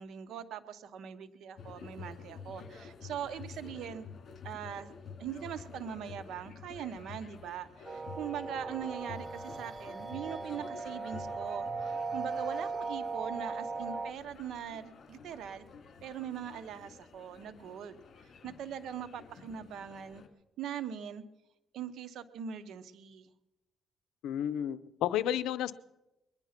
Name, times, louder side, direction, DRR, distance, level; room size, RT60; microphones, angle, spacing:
voice 1, 0.0-4.1 4.4-4.9 5.2-15.6 16.0-18.0 18.4-20.2 20.6-21.2 21.7-23.3, right 9 dB, 75° right, 11 dB, 1.0 m, -41 dB
sound 1, 1.6-20.3, left 5 dB, 55° left, 2.4 m, -50 dB
sound 2, 7.8-14.1, right 4 dB, 30° right, 0.5 m, -38 dB
voice 2, 24.2-25.7, left 11 dB, 90° left, 15 dB, 0.6 m, -31 dB
21.5 x 10.5 x 5.9 m, 0.97 s
cardioid pair, 90°, 0 cm